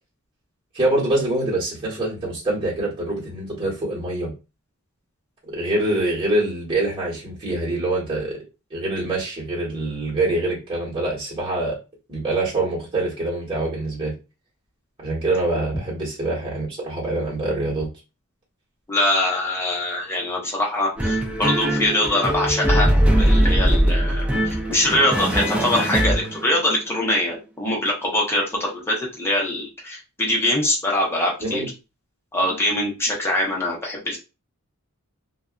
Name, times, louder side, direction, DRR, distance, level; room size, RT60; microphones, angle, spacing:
voice 1, 0.7-4.3 5.4-8.3 8.7-11.8 12.1-14.1 15.0-17.9 31.4-31.7, right 2 dB, 25° right, -7 dB, 1.3 m, -25 dB
voice 2, 18.9-31.6 32.3-34.2, left 1 dB, 10° left, -3 dB, 0.8 m, -23 dB
sound 1, 21.0-26.7, right 1 dB, 5° right, 0.4 m, -20 dB
2.5 x 2.3 x 2.3 m, 0.28 s
head